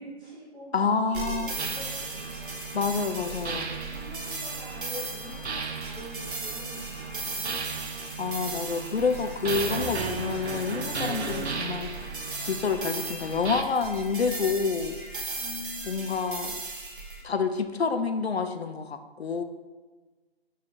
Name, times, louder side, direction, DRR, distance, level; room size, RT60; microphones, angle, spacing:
voice 1, 0.0-2.8 3.7-7.9 15.3-16.4, left 1 dB, 10° right, -10 dB, 0.7 m, -45 dB
voice 2, 0.7-1.5 2.7-3.7 8.2-11.9 12.4-14.9 15.9-16.5 17.2-19.4, left 5 dB, 75° left, 8 dB, 0.5 m, -28 dB
sound 1, 1.1-17.2, right 3 dB, 50° right, 0.8 m, -37 dB
sound 2, 1.6-13.6, right 4 dB, 80° right, 0.5 m, -36 dB
sound 3, 9.0-16.5, left 3 dB, 25° left, 1.1 m, -53 dB
4.2 x 3.1 x 3.9 m, 1.3 s
figure-of-eight pair, 140°, 32 cm